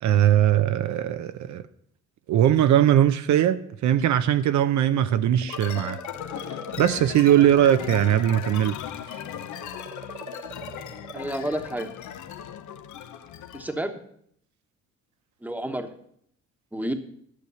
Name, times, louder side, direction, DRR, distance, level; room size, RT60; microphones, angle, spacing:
voice 1, 0.0-1.6 2.3-6.0 6.5-8.8 9.1-9.2, right 11 dB, 70° right, 0.6 m, -20 dB
sound 1, 5.0-8.6 8.8-11.5 12.5-12.6, right 3 dB, 30° right, 1.2 m, -43 dB
sound 2, 5.5-13.8, left 10 dB, 75° left, 0.8 m, -37 dB
voice 2, 11.1-11.9 13.5-14.0 15.4-15.9 16.7-16.9, right 1 dB, 5° right, 1.1 m, -30 dB
11.0 x 6.4 x 6.9 m
cardioid pair, 90°, 30 cm